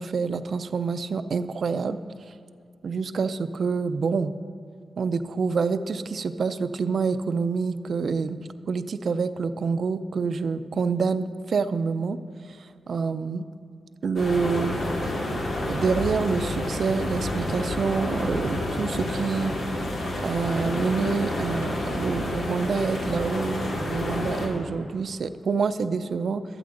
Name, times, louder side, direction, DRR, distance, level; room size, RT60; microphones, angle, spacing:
voice 1, 0.0-2.0 2.8-4.3 5.0-8.4 8.7-12.2 12.9-13.4 14.0-14.8 15.7-19.5 20.2-26.4, right 5 dB, 65° right, 12 dB, 0.5 m, -27 dB
sound 1, 14.2-24.5, left 1 dB, 85° left, 2.5 m, -29 dB
14.0 x 12.5 x 3.9 m, 2.4 s
cardioid pair, 75°, 0 cm